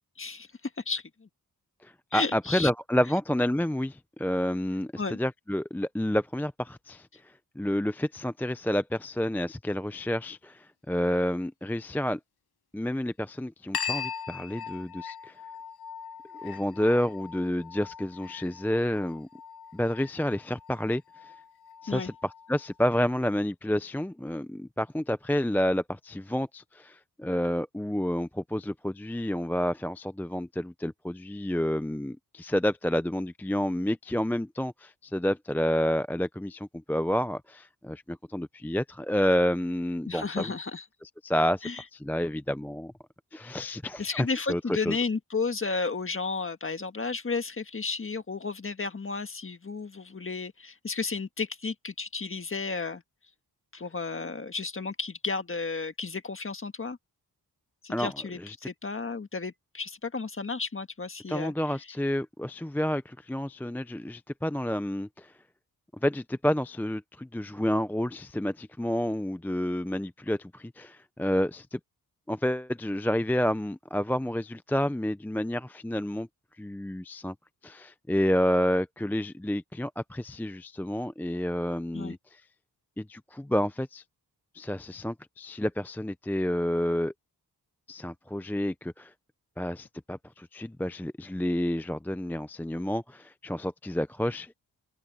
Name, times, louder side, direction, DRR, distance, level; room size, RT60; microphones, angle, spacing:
voice 1, 0.8-1.3 2.1-2.7 5.0-5.2 21.9-22.1 40.1-40.8 41.6-41.8 44.0-53.0 53.7-57.0 57.8-61.5 81.9-82.2, left 4 dB, 30° left, 1.6 m, -33 dB
voice 2, 1.8-7.1 7.6-12.2 12.7-15.4 16.4-19.3 19.7-21.3 21.8-40.6 41.0-42.9 43.3-45.0 57.9-58.1 58.4-58.5 61.3-65.3 66.0-71.8 72.3-76.3 76.6-77.3 77.6-82.4 83.0-84.0 84.5-87.1 87.9-89.1 89.6-94.6, equal, 5° left, 0.4 m, -29 dB
sound 1, 13.7-22.8, left 7 dB, 70° left, 0.9 m, -40 dB
open air
wide cardioid pair, 100°, 39 cm